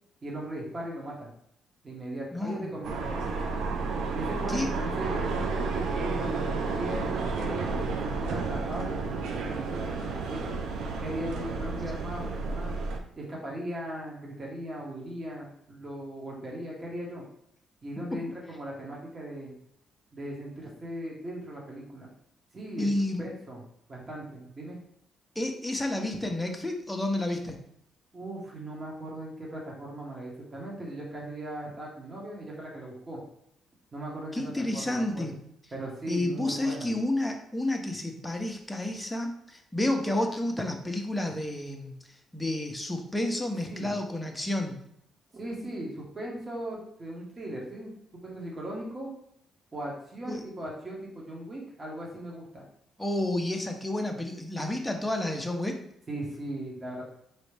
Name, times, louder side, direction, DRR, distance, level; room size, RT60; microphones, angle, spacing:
voice 1, 0.2-1.3 1.8-3.6 4.1-7.9 8.2-10.5 11.0-12.7 13.2-17.2 17.8-19.5 20.1-22.1 22.5-22.9 23.2-23.6 23.9-24.8 28.1-33.2 33.9-35.3 35.7-36.9 43.7-43.9 45.3-47.9 48.2-49.1 49.7-52.6 56.1-57.0, right 1 dB, 30° right, -3 dB, 1.3 m, -38 dB
voice 2, 2.3-2.7 4.5-4.7 22.8-23.2 25.4-27.6 34.3-35.4 36.1-42.0 42.3-44.8 50.2-50.4 53.0-55.8, left 1 dB, 5° left, 2 dB, 0.7 m, -30 dB
sound 1, 2.8-13.0, right 4 dB, 80° right, 0.5 m, -31 dB
4.0 x 3.1 x 3.3 m, 0.75 s
cardioid pair, 90°, 0 cm